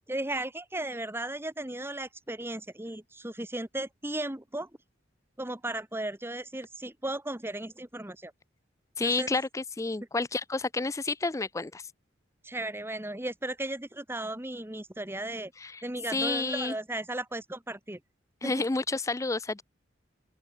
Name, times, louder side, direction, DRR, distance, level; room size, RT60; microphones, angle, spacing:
voice 1, 0.1-4.7 5.4-8.3 9.0-9.3 12.4-15.5 15.8-18.0 18.4-18.5, right 1 dB, 10° right, 1.6 m, -35 dB
voice 2, 9.0-11.8 15.6-15.8 16.1-16.7 18.4-19.6, left 3 dB, 15° left, 0.4 m, -30 dB
open air
head